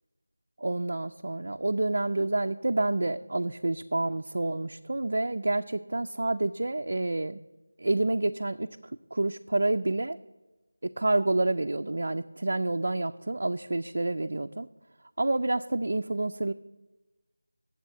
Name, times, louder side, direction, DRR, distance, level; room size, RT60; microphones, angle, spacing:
voice 1, 0.6-7.4 7.8-8.7 9.1-10.2 10.8-14.7 15.2-16.5, right 2 dB, 50° right, 6 dB, 0.4 m, -28 dB
9.8 x 7.4 x 8.4 m, 1.1 s
figure-of-eight pair, 180°, 0 cm